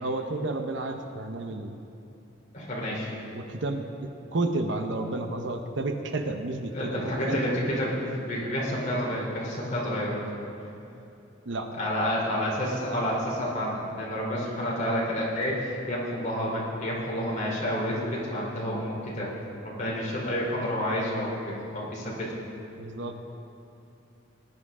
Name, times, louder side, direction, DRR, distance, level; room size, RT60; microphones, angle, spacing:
voice 1, 0.0-1.7 3.3-3.9 4.3-7.4 11.5-11.7 22.8-23.2, right 2 dB, 70° right, 6 dB, 0.8 m, -31 dB
voice 2, 2.5-3.1 6.7-10.2 11.7-19.3 19.6-22.3, equal, 40° left, -5 dB, 3.5 m, -29 dB
19.0 x 11.0 x 3.7 m, 2.7 s
head